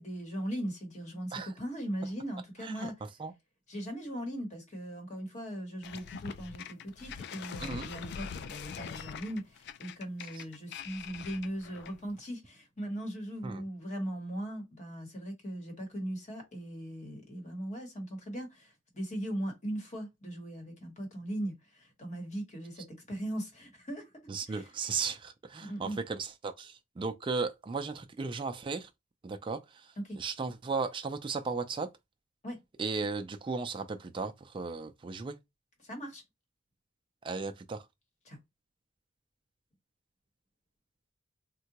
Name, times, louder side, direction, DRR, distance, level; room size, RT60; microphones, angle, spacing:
voice 1, 0.0-2.9 3.7-24.1 24.5-24.7 25.6-26.0 30.0-30.2 32.4-32.6 35.8-36.2 38.3-38.4, right 1 dB, 40° left, 1.1 m, -39 dB
sound 1, 5.8-12.1, left 7 dB, 55° left, 0.3 m, -43 dB
voice 2, 7.6-7.9 10.3-10.4 13.4-13.6 24.3-28.9 29.2-31.9 32.8-35.4 37.2-37.9, right 4 dB, 25° right, 0.3 m, -36 dB
3.6 x 2.1 x 2.8 m
head